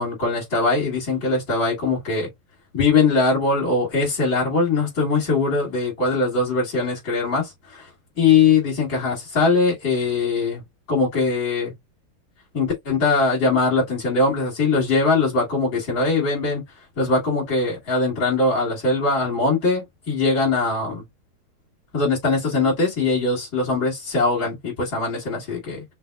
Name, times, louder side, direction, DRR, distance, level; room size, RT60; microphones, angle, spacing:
voice 1, 0.0-2.3 2.7-7.9 8.2-10.6 10.9-11.7 12.5-16.6 17.0-21.0 21.9-25.8, left 4 dB, 60° left, 3.1 m, -21 dB
5.9 x 2.0 x 2.3 m
omnidirectional pair, 2.3 m